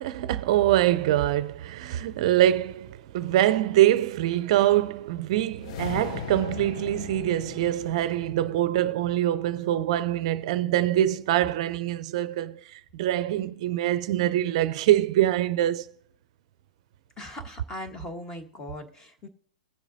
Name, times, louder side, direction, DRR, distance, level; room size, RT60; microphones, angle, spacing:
voice 1, 0.0-15.9, right 13 dB, 50° right, 0.5 m, -24 dB
sound 1, 5.5-9.9, left 10 dB, 55° left, 0.4 m, -39 dB
voice 2, 17.2-19.3, left 1 dB, 15° left, 1.4 m, -39 dB
20.5 x 7.1 x 2.7 m
hypercardioid pair, 135°, 4 cm